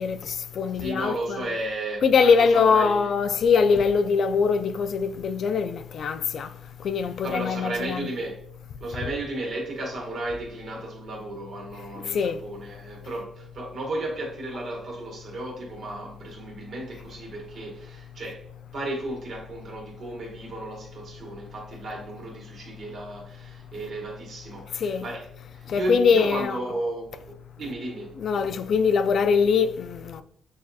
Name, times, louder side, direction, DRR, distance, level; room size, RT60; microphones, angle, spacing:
voice 1, 0.0-1.4 2.0-6.5 6.8-8.1 12.1-12.4 24.8-25.0 25.7-26.6 28.2-30.2, left 5 dB, 65° left, 0.3 m, -22 dB
voice 2, 0.8-3.1 7.2-8.4 8.8-25.3 25.5-28.1, right 2 dB, 65° right, 1.6 m, -34 dB
6.4 x 2.7 x 2.3 m
cardioid pair, 65°, 0 cm